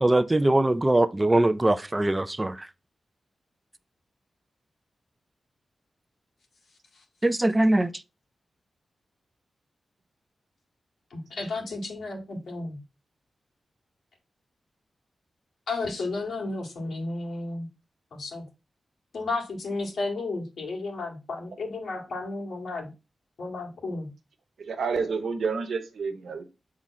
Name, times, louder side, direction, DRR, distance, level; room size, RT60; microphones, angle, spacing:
voice 1, 0.0-2.5 7.2-7.9, right 1 dB, 15° right, 0.4 m, -22 dB
voice 2, 11.1-12.8 15.7-17.7 18.1-18.4 19.1-22.9 23.4-24.1, left 3 dB, 90° left, 2.0 m, -33 dB
voice 3, 24.7-26.4, right 5 dB, 80° right, 1.0 m, -29 dB
7.1 x 3.7 x 4.1 m
wide cardioid pair, 100°, 0 cm